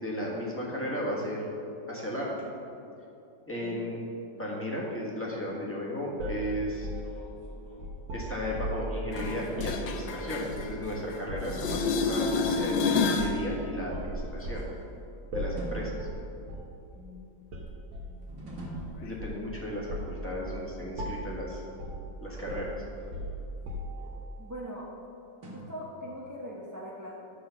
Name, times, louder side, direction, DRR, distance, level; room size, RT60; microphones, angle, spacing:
voice 1, 0.0-1.4 1.9-2.5 3.5-4.0 4.4-6.9 8.1-14.6 15.3-16.0 19.0-21.6 22.2-22.8, equal, 5° left, -5 dB, 1.4 m, -35 dB
sound 1, 6.2-9.0 9.5-9.8 10.5-10.9 11.3-11.9 12.4-12.6 13.2-13.5 13.9-14.7 15.3-15.7 16.0-16.2 16.5-16.7 17.5-18.1 18.7-19.5 19.9-20.2 20.5-20.7 21.0-21.4 21.8-22.1 22.5-24.1, equal, 85° right, 1.9 m, -37 dB
sound 2, 6.8-8.5 9.2-9.8 11.4-12.3 14.3-15.1 15.6-16.7 18.3-19.7 22.1-24.6 25.4-26.4, right 1 dB, 60° right, 2.5 m, -46 dB
sound 3, 9.1-11.2 11.5-13.4 19.1-19.2, left 4 dB, 85° left, 1.4 m, -29 dB
voice 2, 16.9-17.3 18.0-18.3 24.4-24.9 25.5-27.1, equal, 20° right, -6 dB, 0.5 m, -42 dB
11.5 x 3.9 x 7.0 m, 2.7 s
omnidirectional pair, 2.0 m